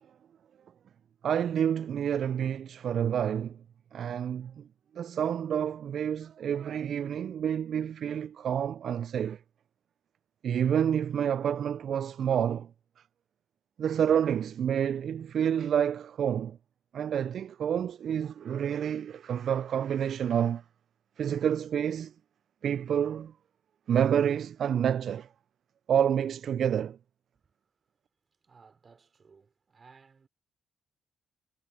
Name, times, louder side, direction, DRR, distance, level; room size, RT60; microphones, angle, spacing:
voice 1, 1.2-3.6 3.9-4.7 4.9-9.4 10.4-12.7 13.8-16.6 16.9-20.6 21.2-22.1 22.6-23.3 23.9-25.3 25.9-27.0, right 9 dB, 60° right, 0.3 m, -28 dB
voice 2, 27.3-28.0 28.3-30.3, right 5 dB, 45° right, 3.3 m, -59 dB
hypercardioid pair, 45°, 0 cm